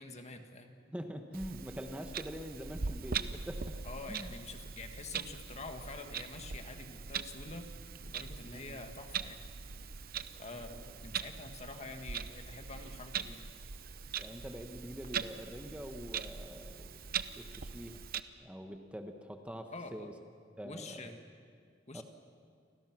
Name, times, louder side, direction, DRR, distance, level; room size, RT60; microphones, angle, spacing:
voice 1, 0.0-0.7 3.8-7.7 8.0-9.4 10.4-13.5 19.7-20.1 20.6-21.2 21.9-22.0, left 3 dB, 35° left, 6 dB, 1.9 m, -47 dB
voice 2, 0.9-3.8 4.1-4.3 8.4-8.8 14.2-17.0 17.4-18.0 18.4-20.1 20.6-21.1 21.9-22.0, equal, 5° right, 5 dB, 1.1 m, -44 dB
Clock, 1.3-18.2, right 6 dB, 50° right, 0.8 m, -41 dB
29.5 x 25.0 x 6.1 m, 2.1 s
head